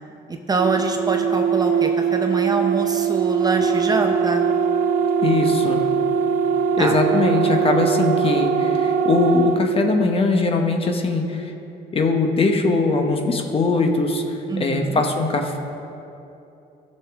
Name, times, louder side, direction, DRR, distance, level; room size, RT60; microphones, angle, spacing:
voice 1, 0.3-4.4 6.8-7.0 14.5-15.0, right 3 dB, 25° right, 4 dB, 0.8 m, -24 dB
sound 1, 0.6-9.6, right 6 dB, 55° right, 0.5 m, -21 dB
voice 2, 5.2-5.8 6.8-11.5 11.9-15.6, left 3 dB, 35° left, 4 dB, 1.1 m, -21 dB
15.5 x 6.7 x 3.7 m, 2.8 s
cardioid pair, 110°, 17 cm